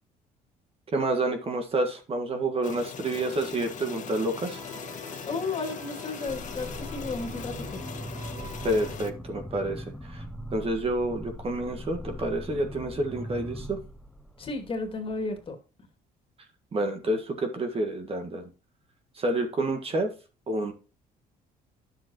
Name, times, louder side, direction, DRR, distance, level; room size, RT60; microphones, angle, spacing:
voice 1, 0.9-4.6 8.6-10.2 10.5-13.8 16.7-18.5 19.2-20.1 20.5-20.7, right 1 dB, 35° right, 5 dB, 1.7 m, -29 dB
sound 1, 2.6-9.1, left 8 dB, 50° left, 1.2 m, -41 dB
sound 2, 3.8-9.0, right 4 dB, 85° right, 1.8 m, -47 dB
voice 2, 5.2-7.9 14.4-15.6, left 3 dB, 30° left, 4 dB, 2.5 m, -33 dB
sound 3, 6.3-15.4, equal, ahead, 0.8 m, -40 dB
10.0 x 7.5 x 3.0 m, 0.33 s
cardioid pair, 110°, 17 cm